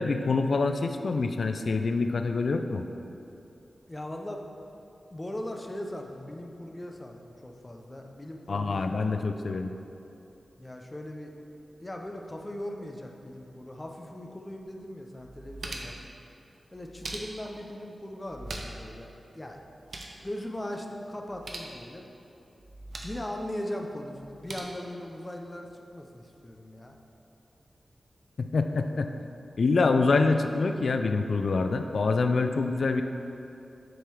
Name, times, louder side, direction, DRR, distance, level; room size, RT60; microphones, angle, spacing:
voice 1, 0.0-2.8 8.5-9.7 28.4-29.1 29.6-33.0, left 3 dB, 70° left, 6 dB, 0.3 m, -26 dB
voice 2, 3.9-4.5 5.1-9.2 10.6-11.3 11.8-16.0 16.7-19.6 20.2-22.0 23.0-26.9, left 1 dB, 20° left, 2 dB, 0.6 m, -39 dB
sound 1, 14.6-14.7 15.2-16.1 16.7-17.6 18.2-18.9 19.2-19.3 19.6-20.2 21.2-21.7 22.6-23.2 24.2-24.6, right 2 dB, 60° right, 0.7 m, -41 dB
6.9 x 3.8 x 4.6 m, 2.8 s
wide cardioid pair, 75°, 0 cm